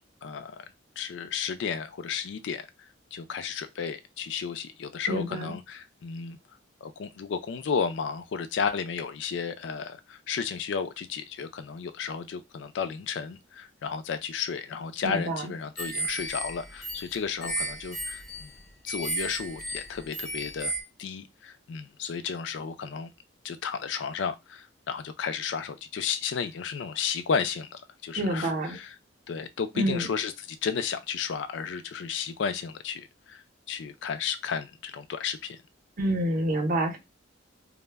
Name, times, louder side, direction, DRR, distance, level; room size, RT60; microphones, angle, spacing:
voice 1, 0.2-0.6 1.0-2.7 3.1-6.4 6.8-18.5 18.8-20.7 21.0-23.1 23.4-28.9 29.3-35.6, left 6 dB, 65° left, 0.3 m, -33 dB
voice 2, 5.1-5.5 15.0-15.5 28.2-28.8 29.8-30.1 36.0-37.0, right 1 dB, 45° right, 0.6 m, -28 dB
sound 1, 15.8-20.8, right 1 dB, ahead, 0.5 m, -34 dB
2.0 x 2.0 x 3.3 m
head